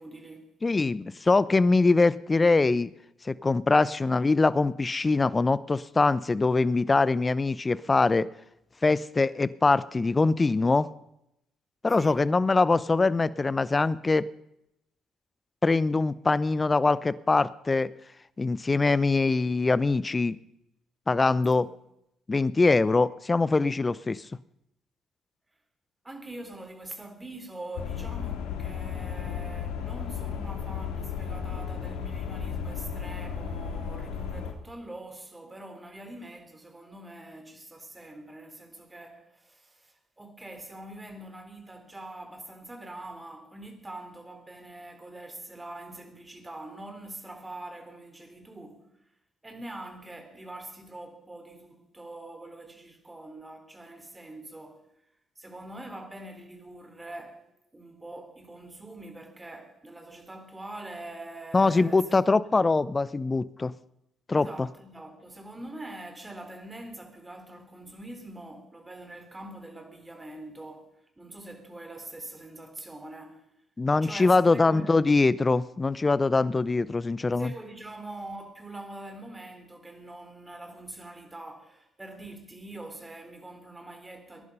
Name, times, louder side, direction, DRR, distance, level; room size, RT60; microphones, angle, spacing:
voice 1, 0.0-0.6 11.9-12.3 21.7-21.8 26.0-49.1 49.4-54.9 55.4-62.1 64.3-73.5 74.0-75.0 77.3-84.4, right 1 dB, 20° right, 3.8 m, -44 dB
voice 2, 0.6-2.9 3.2-8.3 8.8-10.9 11.8-14.2 15.6-17.9 18.4-20.4 21.1-21.7 22.3-24.2 61.5-63.7 64.3-64.7 73.8-77.5, left 3 dB, 25° left, 0.8 m, -23 dB
sound 1, 27.8-34.5, left 7 dB, 75° left, 2.1 m, -34 dB
20.5 x 11.0 x 5.5 m
hypercardioid pair, 50°, 0 cm